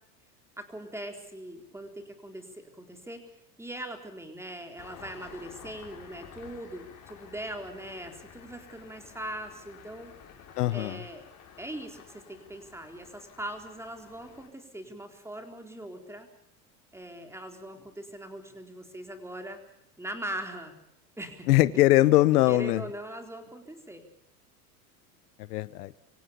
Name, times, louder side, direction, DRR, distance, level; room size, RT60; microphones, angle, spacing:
voice 1, 0.6-3.3 3.6-10.1 10.7-11.3 11.6-16.3 16.9-19.6 20.0-20.7 21.2-21.5 22.5-24.0, right 1 dB, 5° right, 5 dB, 4.1 m, -41 dB
Engine starting, 4.8-14.5, left 7 dB, 40° left, 6.6 m, -51 dB
voice 2, 10.6-11.0 21.5-22.8 25.5-25.9, left 16 dB, 80° left, 17 dB, 1.1 m, -21 dB
25.5 x 17.0 x 8.4 m, 0.75 s
hypercardioid pair, 100°, 46 cm